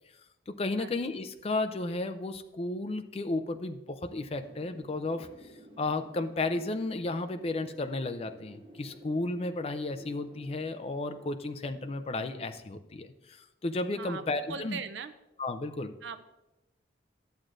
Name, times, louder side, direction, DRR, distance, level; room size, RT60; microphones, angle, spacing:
voice 1, 0.5-5.5 5.8-14.8 15.4-15.9, left 2 dB, 30° left, 8 dB, 0.4 m, -33 dB
Wind, 4.4-13.1, right 1 dB, 30° right, 1.0 m, -53 dB
voice 2, 14.5-15.1 16.0-16.2, right 6 dB, 75° right, 10 dB, 0.4 m, -39 dB
11.5 x 7.6 x 2.5 m, 0.97 s
head